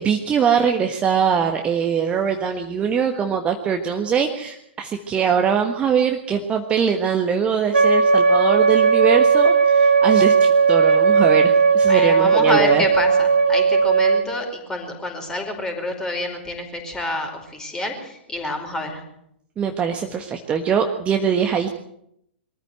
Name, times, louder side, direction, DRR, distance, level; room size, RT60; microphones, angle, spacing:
voice 1, 0.0-12.8 19.6-21.7, right 7 dB, 20° right, 4 dB, 1.5 m, -22 dB
Wind instrument woodwind instrument, 7.7-14.3, right 5 dB, 75° right, 1.9 m, -16 dB
voice 2, 11.9-19.0, left 2 dB, 10° left, 3 dB, 5.0 m, -27 dB
23.0 x 14.0 x 8.0 m, 0.76 s
figure-of-eight pair, 105°, 6 cm